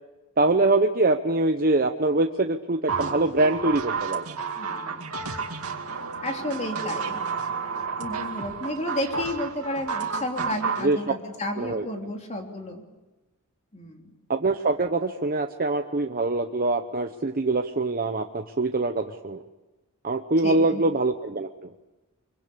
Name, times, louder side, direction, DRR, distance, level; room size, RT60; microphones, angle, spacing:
voice 1, 0.4-4.2 10.8-11.0 11.6-11.9 14.3-19.4 20.0-21.5, right 2 dB, 40° right, 5 dB, 1.0 m, -24 dB
sound 1, 2.9-10.9, right 5 dB, 80° right, 2.4 m, -31 dB
voice 2, 4.6-5.1 6.2-7.2 8.0-12.8 13.7-14.1 20.4-20.8, left 1 dB, 30° left, 2 dB, 3.4 m, -32 dB
25.5 x 24.0 x 8.5 m, 1.1 s
head